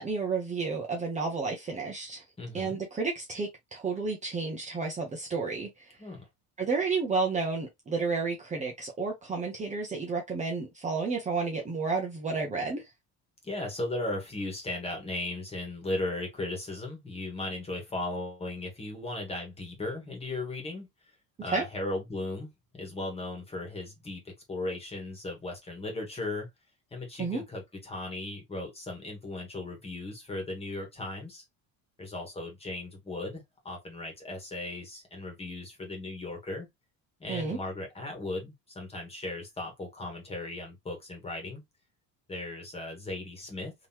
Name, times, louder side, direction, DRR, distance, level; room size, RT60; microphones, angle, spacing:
voice 1, 0.0-2.2 2.5-5.9 6.6-12.8 21.5-21.6 27.2-27.4 37.3-37.6, right 4 dB, 20° right, 0.9 m, -31 dB
voice 2, 2.4-2.8 6.0-6.3 13.4-20.9 21.4-26.5 26.9-31.4 32.0-36.7 37.2-41.6 42.3-43.7, left 2 dB, 15° left, 1.6 m, -37 dB
3.8 x 3.1 x 2.9 m
cardioid pair, 160°, 37 cm